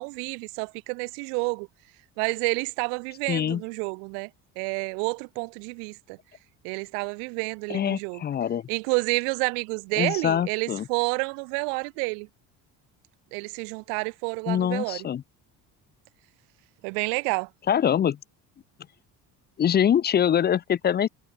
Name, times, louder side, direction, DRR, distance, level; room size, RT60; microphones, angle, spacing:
voice 1, 0.0-1.7 2.2-4.3 4.6-6.2 6.6-8.2 8.7-12.3 13.3-15.0 16.8-17.5, right 40 dB or more, 80° right, 0.7 m, -29 dB
voice 2, 3.3-3.6 7.7-8.7 10.0-10.9 14.5-15.2 17.7-18.2 19.6-21.1, left 9 dB, 25° left, 0.3 m, -24 dB
hypercardioid pair, 65°, 47 cm